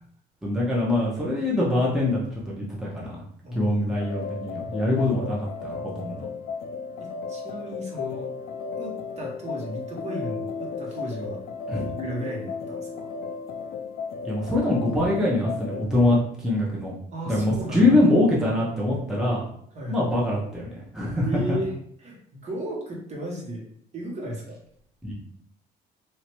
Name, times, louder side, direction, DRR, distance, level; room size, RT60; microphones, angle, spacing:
voice 1, 0.4-3.1 3.5-6.2 11.7-11.9 14.2-16.9 17.3-19.4 19.9-21.3 25.0-25.1, left 1 dB, 5° right, -6 dB, 0.9 m, -24 dB
voice 2, 3.4-4.0 7.0-8.3 8.8-11.4 12.0-13.1 17.1-18.0 19.7-20.1 21.2-21.7 22.0-23.6 23.9-24.6, right 1 dB, 40° right, -2 dB, 1.3 m, -35 dB
sound 1, 4.0-15.9, left 5 dB, 60° left, 0.4 m, -34 dB
3.3 x 2.7 x 3.0 m, 0.66 s
cardioid pair, 110°, 17 cm